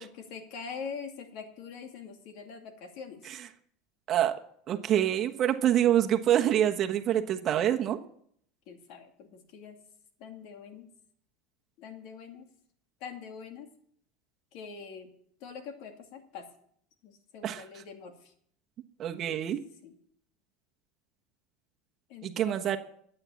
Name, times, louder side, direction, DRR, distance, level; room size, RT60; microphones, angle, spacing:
voice 1, 0.0-3.3 5.7-5.8 8.7-9.8 10.2-10.9 11.8-12.5 13.0-13.7 14.5-15.1 15.4-16.5 17.0-18.3 19.8-19.9 22.1-22.8, left 6 dB, 60° left, 5 dB, 2.4 m, -44 dB
voice 2, 4.7-8.0 17.4-17.6 19.0-19.6 22.2-22.8, right 11 dB, 40° right, 5 dB, 1.2 m, -26 dB
12.0 x 8.9 x 7.2 m, 0.65 s
supercardioid pair, 125°, 0 cm